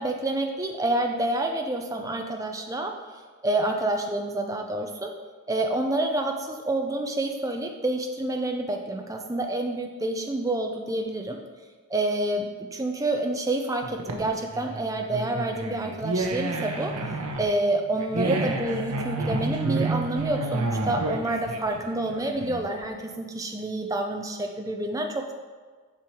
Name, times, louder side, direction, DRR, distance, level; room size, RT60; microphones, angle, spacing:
voice 1, 0.0-3.0 3.4-5.1 5.5-11.4 11.9-25.3, right 2 dB, 15° right, 3 dB, 0.6 m, -28 dB
sound 1, 13.8-22.9, right 2 dB, 85° right, 0.9 m, -30 dB
7.6 x 5.4 x 4.6 m, 1.5 s
head